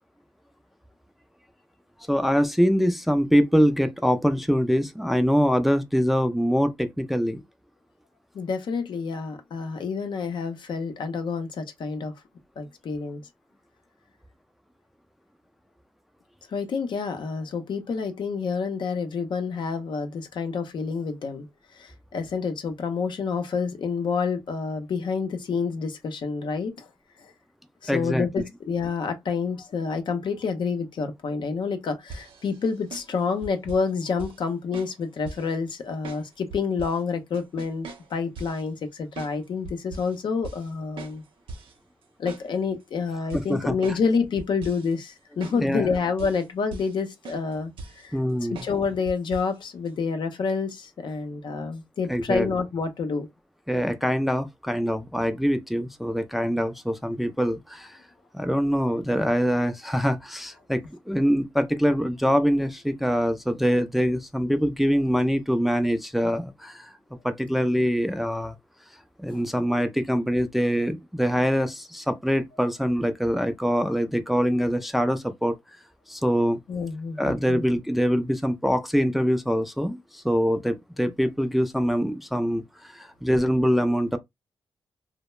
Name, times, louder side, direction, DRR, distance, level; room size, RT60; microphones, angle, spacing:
voice 1, 2.1-7.4 27.9-28.3 43.3-43.8 45.6-45.9 48.1-48.6 52.1-52.5 53.7-58.0 58.3-66.9 67.2-68.6 69.2-75.6 76.1-76.6 77.2-84.2, equal, ahead, 0.4 m, -24 dB
voice 2, 8.3-12.1 12.6-13.2 16.5-21.5 21.8-26.8 27.8-41.2 42.2-47.7 48.0-48.1 48.6-53.3 69.3-69.4 76.7-77.6, left 5 dB, 65° left, 0.6 m, -28 dB
sound 1, 32.1-33.9 34.2-34.4 34.7-35.5 36.0-37.0 37.3-38.6 39.2-39.4 39.7-40.2 40.4-40.7 41.0-41.7 42.0-42.8 43.3-44.1 44.4-44.9 45.4-45.6 45.9-46.5 46.7-47.0 47.3-48.1 48.6-48.8 49.1-49.5 49.9-50.0, right 3 dB, 80° right, 0.7 m, -40 dB
2.2 x 2.0 x 3.0 m
cardioid pair, 80°, 9 cm